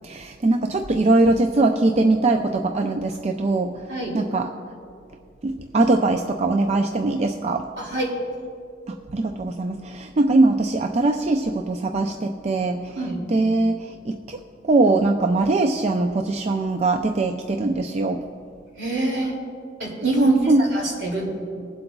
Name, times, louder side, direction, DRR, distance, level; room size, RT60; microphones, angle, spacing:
voice 1, 0.0-3.9 4.1-4.5 5.4-7.7 8.9-13.0 13.3-18.2 20.2-20.6, right 2 dB, 40° right, 4 dB, 0.4 m, -21 dB
voice 2, 7.8-8.2 13.0-13.2 18.8-19.3 19.8-21.4, right 2 dB, 70° right, -2 dB, 2.4 m, -26 dB
20.5 x 7.8 x 2.3 m, 2.4 s
head